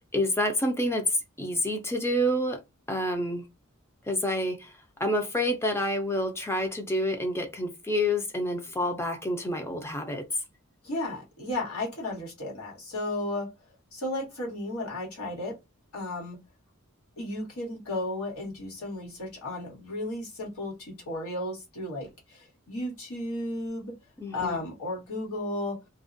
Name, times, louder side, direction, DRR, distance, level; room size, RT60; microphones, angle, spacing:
voice 1, 0.1-2.6 2.9-3.5 4.1-10.3 24.2-24.6, left 1 dB, 10° left, 0.4 m, -28 dB
voice 2, 10.8-13.5 13.9-15.6 15.9-16.4 17.2-23.9 24.3-25.8, left 1 dB, 85° left, 1.3 m, -34 dB
2.4 x 2.1 x 2.5 m
head